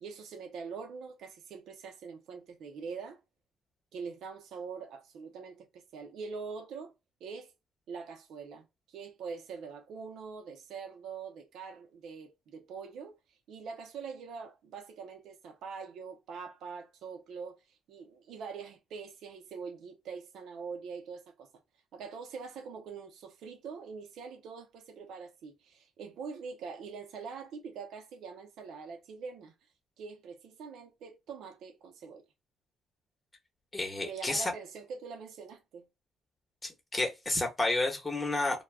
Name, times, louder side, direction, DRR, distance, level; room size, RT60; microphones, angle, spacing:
voice 1, 0.0-3.2 3.9-6.9 7.2-7.5 7.9-13.2 13.5-21.5 21.9-29.5 30.0-32.2 34.0-35.9, right 5 dB, 75° right, 0.6 m, -44 dB
voice 2, 33.7-34.5 36.6-38.6, left 2 dB, 20° left, 1.1 m, -31 dB
2.2 x 2.2 x 3.3 m
cardioid pair, 90°, 0 cm